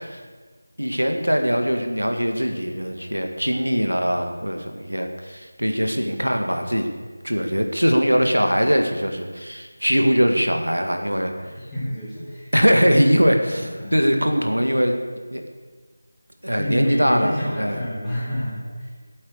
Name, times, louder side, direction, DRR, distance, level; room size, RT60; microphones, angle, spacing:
voice 1, 0.8-6.9 7.2-11.3 12.5-15.0 15.3-15.4 16.4-17.3 17.6-17.8, equal, 80° right, 4 dB, 1.8 m, -21 dB
voice 2, 11.3-12.5 12.8-13.2 13.5-14.0 16.5-18.9, equal, 5° left, -16 dB, 4.9 m, -28 dB
15.5 x 8.6 x 8.0 m, 1.5 s
figure-of-eight pair, 165°, 0 cm